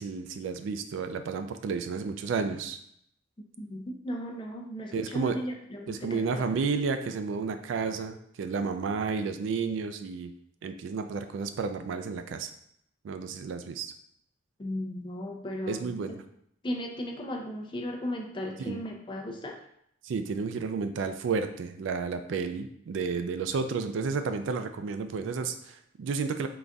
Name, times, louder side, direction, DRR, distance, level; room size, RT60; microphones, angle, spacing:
voice 1, 0.0-2.8 4.9-5.4 5.9-10.3 10.6-12.5 13.0-13.9 15.7-16.2 18.6-18.8 20.0-26.5, right 5 dB, 65° right, 8 dB, 0.3 m, -31 dB
voice 2, 3.6-6.5 14.6-15.9 16.6-19.6, equal, 25° left, 2 dB, 0.4 m, -36 dB
3.9 x 2.4 x 3.3 m, 0.71 s
head